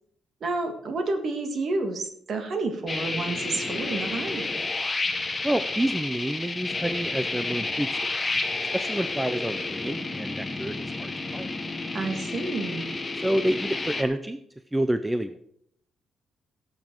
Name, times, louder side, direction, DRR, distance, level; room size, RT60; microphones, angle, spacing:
voice 1, 0.4-4.5 11.9-12.9, right 3 dB, 40° right, 5 dB, 1.9 m, -30 dB
sound 1, 2.9-14.0, left 3 dB, 15° left, 1.0 m, -30 dB
voice 2, 5.4-8.4 8.7-11.5 13.2-14.4 14.7-15.4, right 1 dB, 5° right, 10 dB, 0.4 m, -29 dB
17.0 x 7.5 x 4.5 m, 0.69 s
cardioid pair, 170°, 0 cm